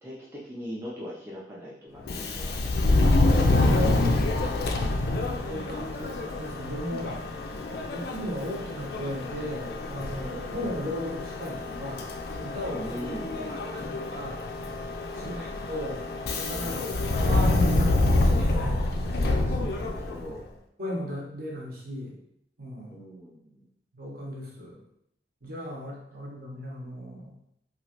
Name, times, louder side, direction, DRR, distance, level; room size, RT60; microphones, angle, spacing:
voice 1, 0.0-3.1 4.7-6.0 12.7-14.1 15.2-15.5 16.8-17.1 19.5-20.4 22.9-23.7, equal, 15° right, -6 dB, 0.4 m, -42 dB
Subway metro underground, 2.0-20.4, left 2 dB, 60° left, 0.4 m, -27 dB
voice 2, 5.5-7.1 7.9-12.1 12.4-13.0 13.7-14.4 15.1-16.1 16.3-19.3 19.6-19.7 20.8-22.2 22.6-23.0 23.9-24.8 25.4-27.3, equal, 55° right, -3 dB, 0.9 m, -36 dB
2.9 x 2.4 x 2.9 m, 0.74 s
head